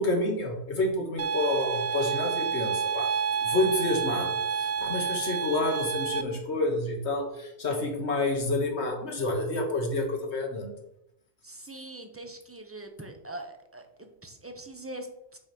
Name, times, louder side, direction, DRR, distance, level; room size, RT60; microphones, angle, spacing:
voice 1, 0.0-10.7, left 2 dB, 75° left, 2 dB, 1.7 m, -29 dB
sound 1, 1.2-6.2, right 6 dB, 55° right, 0.5 m, -29 dB
voice 2, 11.4-15.4, right 1 dB, 15° right, 4 dB, 0.8 m, -42 dB
5.7 x 4.9 x 6.0 m, 0.80 s
omnidirectional pair, 1.1 m